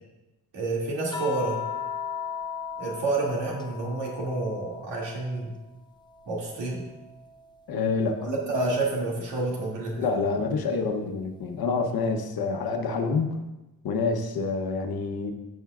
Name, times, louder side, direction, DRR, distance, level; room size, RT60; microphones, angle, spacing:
voice 1, 0.5-1.6 2.8-5.5 6.3-6.8 8.2-10.1, right 2 dB, 85° right, -3 dB, 2.5 m, -29 dB
sound 1, 1.1-5.6 6.0-7.6 9.1-9.3, left 7 dB, 10° left, 0.6 m, -37 dB
voice 2, 7.7-8.3 10.0-13.4 13.8-15.3, left 4 dB, 60° left, 5 dB, 1.0 m, -27 dB
15.0 x 5.5 x 2.4 m, 1.0 s
cardioid pair, 135°, 42 cm